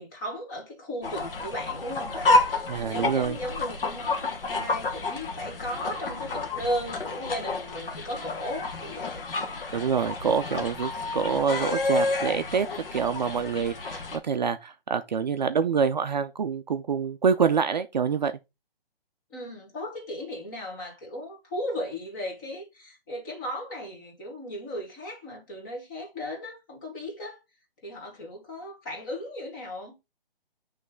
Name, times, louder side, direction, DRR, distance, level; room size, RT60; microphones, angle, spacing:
voice 1, 0.0-9.2 19.3-27.4 27.8-29.9, equal, 20° left, 1.6 m, -36 dB
sound 1, 1.0-14.2, left 2 dB, 65° left, 1.3 m, -30 dB
voice 2, 2.7-3.4 9.7-18.3, right 6 dB, 50° right, 0.4 m, -26 dB
8.2 x 3.2 x 3.6 m
hypercardioid pair, 165°, 29 cm